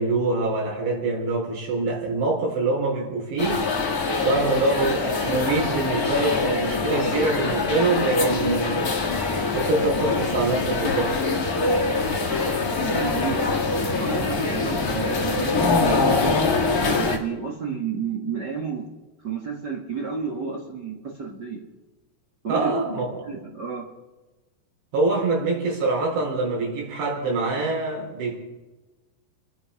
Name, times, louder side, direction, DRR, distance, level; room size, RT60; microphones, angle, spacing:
voice 1, 0.0-3.7 4.2-9.0 9.5-11.5 22.5-23.1 23.3-23.4 24.9-28.4, right 3 dB, 85° right, -1 dB, 6.0 m, -25 dB
sound 1, 3.4-17.2, left 3 dB, 45° left, 1.1 m, -24 dB
voice 2, 12.6-18.9 19.2-21.6 22.4-22.7 23.2-23.9, right 5 dB, 50° right, -2 dB, 1.2 m, -31 dB
28.0 x 10.0 x 4.9 m, 1.1 s
omnidirectional pair, 4.8 m